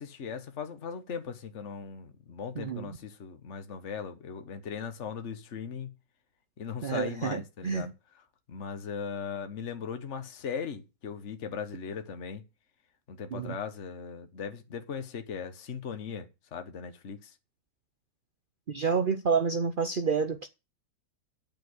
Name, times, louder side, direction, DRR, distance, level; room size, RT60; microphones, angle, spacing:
voice 1, 0.0-5.9 6.6-7.9 8.5-12.4 13.1-17.3, left 6 dB, 45° left, 1.5 m, -38 dB
voice 2, 2.6-2.9 6.8-7.9 13.3-13.5 18.7-20.5, right 5 dB, 70° right, 0.5 m, -29 dB
9.2 x 7.1 x 8.1 m
omnidirectional pair, 1.9 m